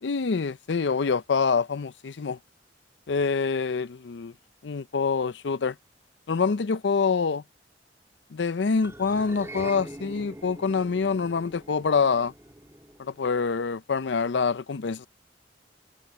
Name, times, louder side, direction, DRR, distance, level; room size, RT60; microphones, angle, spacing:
voice 1, 0.0-2.4 3.1-4.3 4.6-5.7 6.3-7.4 8.3-12.3 13.0-15.1, left 5 dB, 75° left, 0.5 m, -26 dB
sound 1, 8.8-13.4, right 1 dB, 15° right, 1.7 m, -44 dB
open air
head